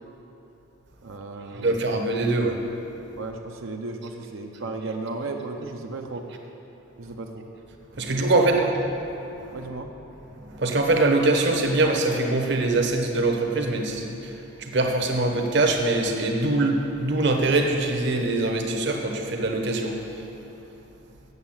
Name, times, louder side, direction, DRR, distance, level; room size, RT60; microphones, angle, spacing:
voice 1, 1.0-1.8 3.2-6.3 7.0-7.5 8.1-8.7 9.5-9.9, right 3 dB, 75° right, 3 dB, 0.7 m, -34 dB
voice 2, 1.5-2.6 8.0-8.6 10.5-14.3 14.6-20.0, right 2 dB, 55° right, 3 dB, 1.0 m, -23 dB
8.1 x 7.1 x 7.3 m, 2.9 s
head